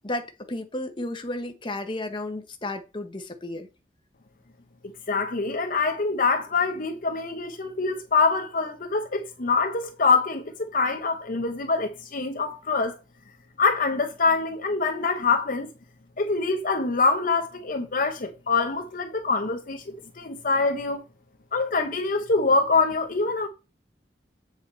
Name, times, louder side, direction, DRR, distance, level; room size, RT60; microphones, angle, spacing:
voice 1, 0.0-3.7, left 1 dB, 30° left, 1.1 m, -33 dB
voice 2, 5.1-13.0 13.6-15.7 16.2-21.0 21.5-23.5, left 4 dB, 50° left, 0.8 m, -25 dB
7.9 x 4.9 x 4.2 m
head